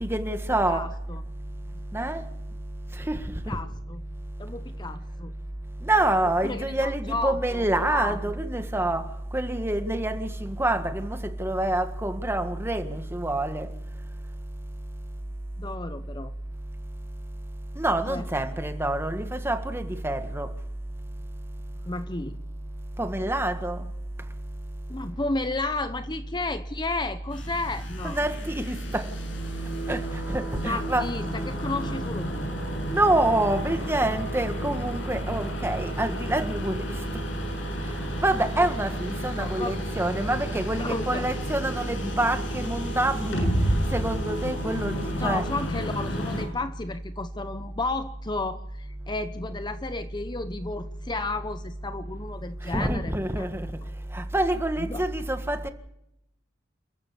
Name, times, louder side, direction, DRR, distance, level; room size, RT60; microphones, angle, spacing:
voice 1, 0.0-0.9 1.9-2.2 3.0-3.6 5.8-9.0 9.3-13.7 17.7-20.5 23.0-23.8 28.0-29.1 29.9-31.1 32.9-36.9 38.2-43.5 43.9-45.4 52.7-53.7 54.1-55.7, right 1 dB, 15° right, 1.7 m, -27 dB
voice 2, 0.7-1.2 3.5-4.0 4.4-5.3 6.2-8.4 15.6-16.3 18.1-18.3 21.9-22.4 24.9-28.2 30.6-32.5 38.0-38.1 39.4-39.8 40.8-41.3 45.1-53.5 54.9-55.0, left 2 dB, 25° left, 0.9 m, -33 dB
sound 1, 27.3-46.4, equal, 85° left, 6.7 m, -32 dB
28.5 x 14.0 x 7.0 m
head